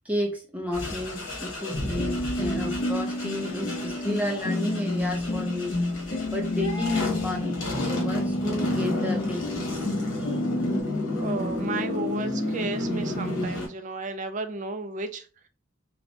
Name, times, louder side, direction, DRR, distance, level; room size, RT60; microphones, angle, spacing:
voice 1, 0.0-5.8 6.3-9.9 10.2-10.4, left 1 dB, 5° right, 0 dB, 0.7 m, -32 dB
sound 1, 0.7-13.7, left 2 dB, 75° left, 1.2 m, -32 dB
sound 2, 1.8-10.8, left 1 dB, 40° left, 0.5 m, -30 dB
voice 2, 11.2-15.5, right 3 dB, 40° right, 8 dB, 0.4 m, -33 dB
3.2 x 2.9 x 2.6 m, 0.36 s
head